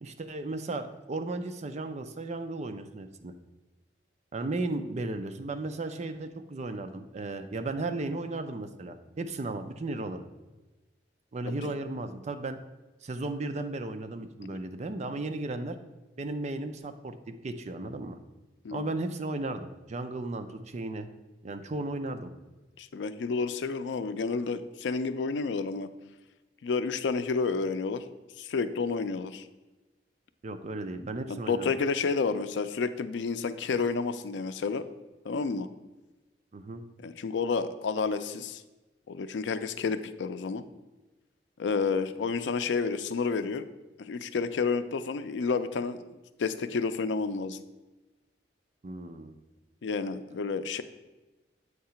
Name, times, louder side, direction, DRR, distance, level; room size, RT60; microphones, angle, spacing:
voice 1, 0.0-3.3 4.3-10.2 11.3-12.6 13.0-15.8 16.2-18.2 18.7-21.1 21.4-22.3 30.4-31.7 36.5-36.8 48.8-49.4, right 2 dB, 40° right, 7 dB, 0.4 m, -35 dB
voice 2, 22.8-25.9 26.6-28.1 28.4-29.5 31.3-34.8 35.2-35.7 37.0-38.6 39.1-40.6 41.6-43.7 44.0-47.6 49.8-50.8, left 4 dB, 90° left, 11 dB, 0.4 m, -30 dB
8.0 x 2.8 x 5.6 m, 1.1 s
head